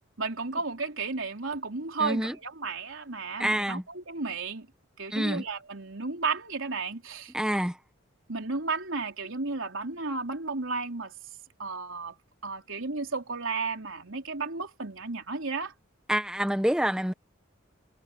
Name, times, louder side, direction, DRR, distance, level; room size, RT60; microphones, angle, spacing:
voice 1, 0.2-4.7 5.0-7.3 8.3-11.1 11.6-12.1 12.4-15.7, right 4 dB, 70° right, 3.8 m, -33 dB
voice 2, 2.0-2.4 3.4-3.8 5.1-5.4 7.3-7.8 16.1-17.1, equal, 5° right, 0.9 m, -27 dB
head